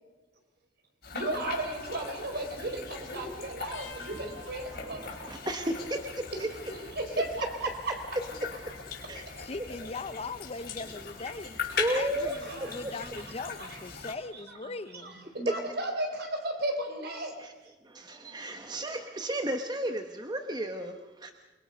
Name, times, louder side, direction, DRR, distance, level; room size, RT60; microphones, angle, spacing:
sound 1, 1.0-14.1, left 5 dB, 60° left, 4.9 m, -40 dB
voice 1, 1.1-5.1 6.7-8.2 12.4-13.1 13.6-13.8 14.5-14.6 14.9-17.4 18.6-18.8, right 1 dB, 60° right, 4.2 m, -35 dB
sound 2, 3.7-6.9 7.2-7.8 8.8-10.2 10.9-11.2 12.4-12.8 14.3-14.4, left 1 dB, 85° left, 3.0 m, -54 dB
voice 2, 4.7-6.0 6.4-6.5 9.1-9.2 11.8-12.4 17.4-17.5 17.8-21.3, right 1 dB, 25° right, 1.0 m, -33 dB
voice 3, 9.4-15.2, left 3 dB, 35° left, 0.7 m, -40 dB
28.5 x 22.0 x 5.3 m
head